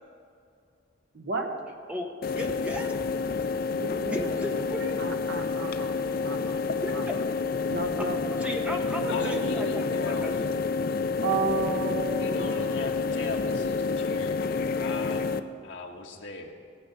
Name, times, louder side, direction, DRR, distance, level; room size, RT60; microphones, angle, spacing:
voice 1, 1.1-1.6 3.7-4.6 5.0-6.0 6.2-6.6 6.9-7.0 7.7-9.5 11.2-13.0, right 4 dB, 65° right, 3 dB, 1.2 m, -33 dB
voice 2, 1.9-3.0 4.1-5.1 6.8-7.2 8.0-8.1 8.4-10.7, left 1 dB, 5° right, 2 dB, 1.2 m, -35 dB
sound 1, 2.2-15.4, left 4 dB, 50° left, 0.5 m, -29 dB
voice 3, 9.1-10.5 12.2-15.2 15.6-16.5, left 3 dB, 70° left, 1 dB, 1.6 m, -38 dB
18.5 x 8.1 x 5.4 m, 2.4 s
head